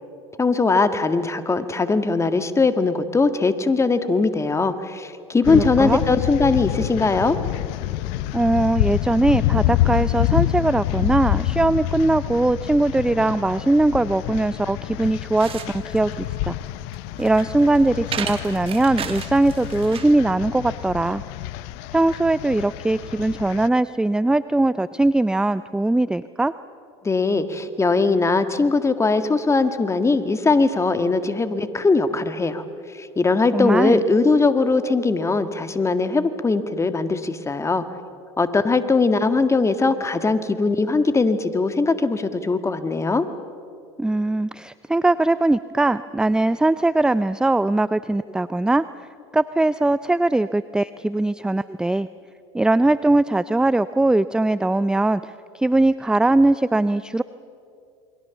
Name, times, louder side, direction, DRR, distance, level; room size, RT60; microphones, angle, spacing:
voice 1, 0.4-7.4 27.0-32.6 32.9-37.8 38.4-43.3, left 3 dB, 20° left, 10 dB, 1.8 m, -20 dB
sound 1, 5.4-23.7, left 15 dB, 65° left, 0.8 m, -27 dB
voice 2, 5.5-6.0 8.3-16.6 17.2-21.2 21.9-26.5 33.5-34.0 44.0-49.1 49.3-52.1 52.5-57.2, right 2 dB, 5° right, 15 dB, 0.5 m, -20 dB
sound 2, 15.0-20.2, right 7 dB, 40° right, 2.4 m, -35 dB
28.5 x 22.5 x 7.1 m, 2.5 s
hypercardioid pair, 80°, 15 cm